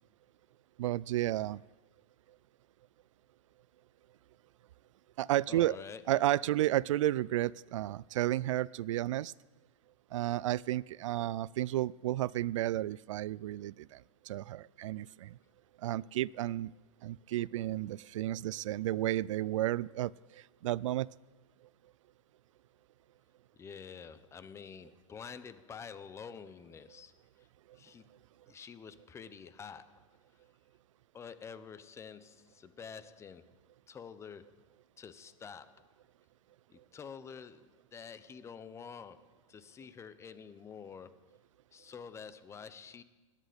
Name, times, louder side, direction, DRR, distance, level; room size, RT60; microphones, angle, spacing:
voice 1, 0.8-1.6 5.2-5.8 6.1-9.3 10.1-14.0 14.3-15.4 15.8-16.7 17.0-21.1, right 14 dB, 70° right, 0.4 m, -32 dB
voice 2, 5.5-6.0 23.6-27.1 27.7-28.1 28.5-30.1 31.1-33.5 33.9-34.6 35.0-35.9 36.7-41.2 41.7-43.0, left 6 dB, 15° left, 0.8 m, -48 dB
18.0 x 10.5 x 5.2 m
hypercardioid pair, 130°, 17 cm